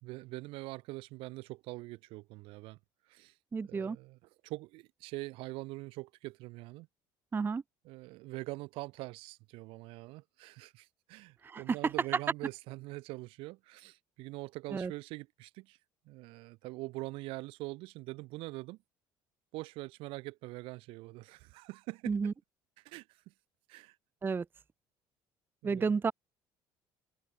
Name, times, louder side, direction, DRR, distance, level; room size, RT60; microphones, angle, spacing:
voice 1, 0.0-2.8 3.1-3.3 3.6-6.9 7.8-15.8 16.0-18.8 19.5-22.3 22.8-23.3 23.7-24.0 25.6-26.0, right 22 dB, 75° right, 3.3 m, -44 dB
voice 2, 3.5-4.0 7.3-7.6 11.4-11.8 14.7-14.9 22.1-22.3 24.2-24.4 25.6-26.1, right 5 dB, 20° right, 0.4 m, -31 dB
supercardioid pair, 80°, 9 cm